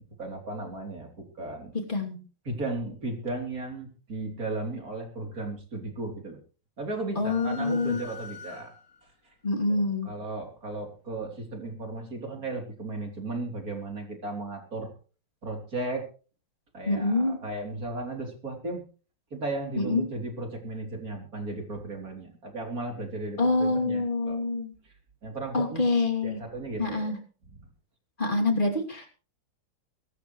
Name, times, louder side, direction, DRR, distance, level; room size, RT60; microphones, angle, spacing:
voice 1, 0.0-1.7 2.5-6.4 6.8-8.7 9.0-9.3 9.7-14.9 15.4-16.1 16.7-18.8 19.3-24.4 24.8-24.9 25.2-25.9 26.2-27.1 27.5-27.7, right 2 dB, 40° right, 3 dB, 3.9 m, -35 dB
sound 1, 7.2-9.1, left 4 dB, 55° left, 3.8 m, -44 dB
voice 2, 7.2-8.0 9.4-10.1 16.9-17.4 19.8-20.1 23.4-24.7 25.5-26.4 26.8-27.2 28.2-29.1, left 2 dB, 25° left, 2 dB, 2.9 m, -26 dB
23.5 x 13.0 x 3.2 m, 0.38 s
omnidirectional pair, 2.3 m